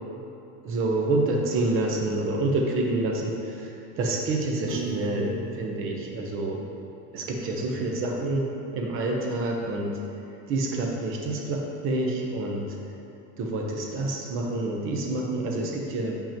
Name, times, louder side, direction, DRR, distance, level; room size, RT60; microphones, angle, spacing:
voice 1, 0.6-6.6 7.1-10.0 10.5-12.8 13.4-16.2, right 2 dB, 25° right, 0 dB, 0.8 m, -28 dB
Piano, 4.7-6.9, right 9 dB, 80° right, 1.2 m, -38 dB
8.8 x 5.5 x 2.9 m, 2.8 s
supercardioid pair, 150°, 48 cm